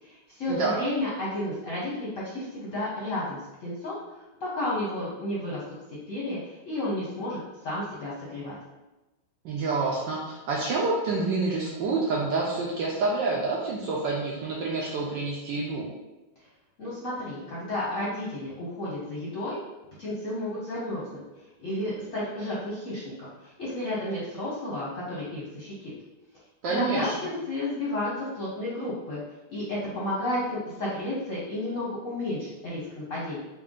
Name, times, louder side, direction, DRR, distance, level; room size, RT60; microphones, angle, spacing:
voice 1, 0.0-5.6 6.1-8.6 16.8-19.6 20.0-21.2 21.6-25.9 26.7-29.2 29.5-33.4, left 1 dB, 55° left, -7 dB, 0.9 m, -32 dB
voice 2, 9.4-15.9 26.6-27.1, right 3 dB, 75° right, -3 dB, 1.1 m, -28 dB
4.4 x 2.2 x 3.6 m, 1.1 s
omnidirectional pair, 2.4 m